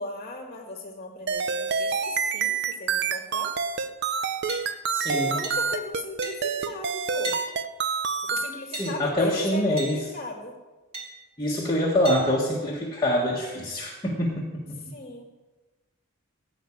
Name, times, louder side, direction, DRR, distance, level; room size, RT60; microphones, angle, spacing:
voice 1, 0.0-3.5 5.1-7.4 8.2-10.6 14.9-15.3, left 2 dB, 35° left, 2 dB, 1.6 m, -36 dB
sound 1, 1.3-8.5, right 6 dB, 55° right, 0.7 m, -27 dB
sound 2, 4.5-4.6 5.4-5.6 6.2-6.4 7.2-7.4 8.7-8.9 9.8-9.9 10.9-11.1 12.0-12.3, right 2 dB, 30° right, 2.2 m, -33 dB
voice 2, 4.9-5.4 8.7-10.0 11.4-14.8, left 1 dB, 20° left, -4 dB, 1.5 m, -25 dB
14.5 x 5.4 x 8.6 m, 1.2 s
head